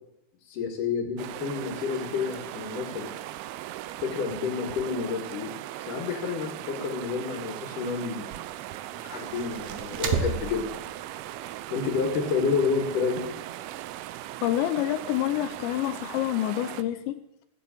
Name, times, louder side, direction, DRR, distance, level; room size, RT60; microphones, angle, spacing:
voice 1, 0.5-3.1 4.0-5.5 5.8-8.5 9.0-10.8 11.7-13.2, left 5 dB, 55° left, -3 dB, 3.1 m, -29 dB
sound 1, 1.2-16.8, right 14 dB, 85° right, 2.2 m, -39 dB
sound 2, 8.2-16.2, right 6 dB, 65° right, 2.4 m, -38 dB
voice 2, 14.4-17.4, left 13 dB, 85° left, 9 dB, 3.0 m, -28 dB
16.0 x 8.4 x 8.6 m, 0.82 s
omnidirectional pair, 5.1 m